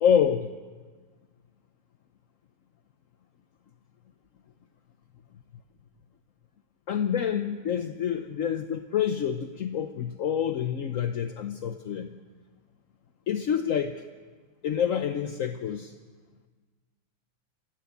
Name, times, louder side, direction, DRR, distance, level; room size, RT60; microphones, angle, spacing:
voice 1, 0.0-0.5 6.9-12.2 13.3-13.9 14.6-15.9, left 8 dB, 55° left, 7 dB, 1.0 m, -27 dB
28.5 x 15.5 x 8.3 m, 1.4 s
omnidirectional pair, 2.2 m